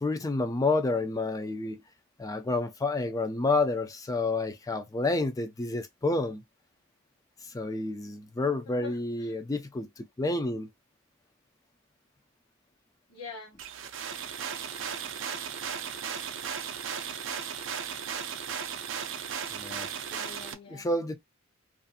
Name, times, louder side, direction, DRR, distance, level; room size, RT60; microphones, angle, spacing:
voice 1, 0.0-1.8 2.2-6.4 7.4-10.7 19.5-19.9 20.7-21.2, left 2 dB, 15° left, 0.3 m, -29 dB
voice 2, 8.7-9.4 13.1-13.6 20.1-20.9, left 5 dB, 80° left, 0.9 m, -45 dB
sound 1, 13.6-20.5, right 7 dB, 55° right, 0.4 m, -36 dB
2.5 x 2.4 x 2.6 m
head